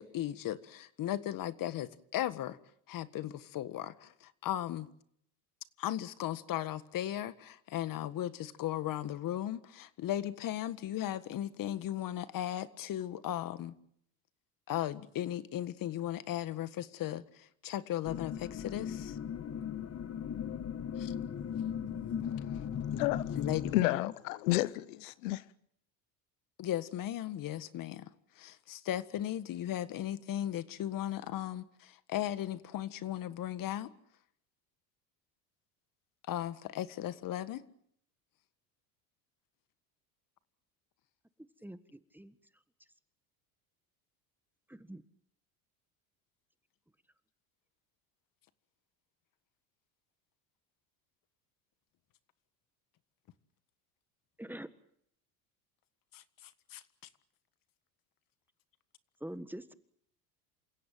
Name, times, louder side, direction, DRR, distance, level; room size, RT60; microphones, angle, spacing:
voice 1, 0.0-2.6 2.9-4.9 5.8-13.8 14.7-17.2 17.6-19.2 21.0-21.1 23.4-24.1 26.6-28.1 28.4-33.9 36.3-37.6 56.1-56.2 56.7-56.8, left 12 dB, 50° left, 1.7 m, -36 dB
sound 1, 18.0-23.8, left 8 dB, 35° left, 1.6 m, -37 dB
voice 2, 22.9-23.2 23.7-25.4, left 18 dB, 85° left, 1.0 m, -31 dB
voice 3, 41.6-42.4 44.7-45.0 54.4-54.7 59.2-59.7, right 1 dB, 5° right, 1.5 m, -44 dB
28.0 x 16.5 x 9.2 m
supercardioid pair, 95°, 42 cm